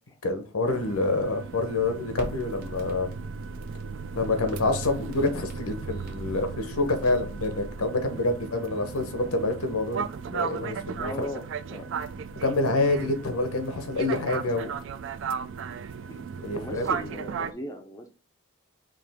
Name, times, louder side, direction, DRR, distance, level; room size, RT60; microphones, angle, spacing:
voice 1, 0.2-3.1 4.1-11.1 12.4-14.7 16.4-16.8, left 2 dB, 85° left, 0.9 m, -27 dB
sound 1, 0.6-17.5, right 6 dB, 55° right, 0.3 m, -36 dB
Crackle, 2.1-7.9, right 1 dB, 40° right, 1.2 m, -42 dB
voice 2, 11.0-11.9 16.1-18.1, left 1 dB, 15° left, 0.4 m, -38 dB
5.0 x 2.9 x 3.4 m
head